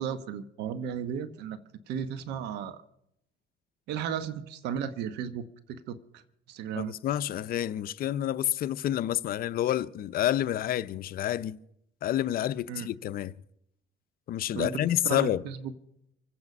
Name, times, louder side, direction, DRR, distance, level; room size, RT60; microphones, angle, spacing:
voice 1, 0.0-1.6 1.9-2.8 3.9-6.2 6.5-6.9 12.7-12.9 14.5-15.7, right 8 dB, 85° right, 1.0 m, -35 dB
voice 2, 6.7-11.6 12.0-13.3 14.3-15.4, left 12 dB, 60° left, 0.6 m, -29 dB
26.0 x 8.6 x 5.3 m
cardioid pair, 110°, 17 cm